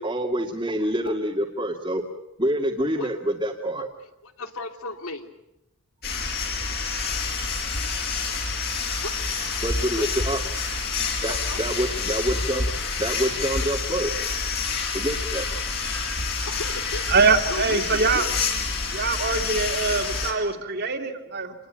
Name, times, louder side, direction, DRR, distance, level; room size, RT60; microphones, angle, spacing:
voice 1, 0.0-2.0 2.4-3.9 8.5-9.0 9.6-10.4 11.2-14.1 14.9-15.5, right 1 dB, 20° right, -2 dB, 2.3 m, -27 dB
voice 2, 4.2-5.3 9.0-9.1 9.9-10.2 11.4-11.6 16.5-17.0 17.5-18.1, left 2 dB, 75° left, 5 dB, 3.0 m, -35 dB
sound 1, 6.0-20.3, left 4 dB, 45° left, 6.1 m, -28 dB
voice 3, 17.1-18.3 18.9-21.5, right 4 dB, 45° right, 5 dB, 2.9 m, -23 dB
28.0 x 21.0 x 9.1 m, 0.89 s
head